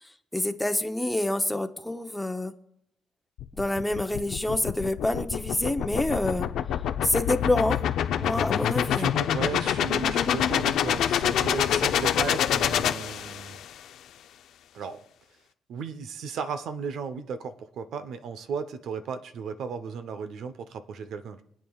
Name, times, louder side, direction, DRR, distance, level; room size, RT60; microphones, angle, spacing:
voice 1, 0.0-2.5 3.5-6.5 7.0-7.8 8.2-9.1, left 1 dB, 5° left, 7 dB, 0.8 m, -27 dB
sound 1, 3.4-13.7, left 10 dB, 80° left, 0.6 m, -26 dB
voice 2, 9.0-13.6 14.7-15.0 15.7-21.4, right 6 dB, 75° right, 10 dB, 0.8 m, -35 dB
25.5 x 8.7 x 2.4 m, 0.78 s
cardioid pair, 100°, 0 cm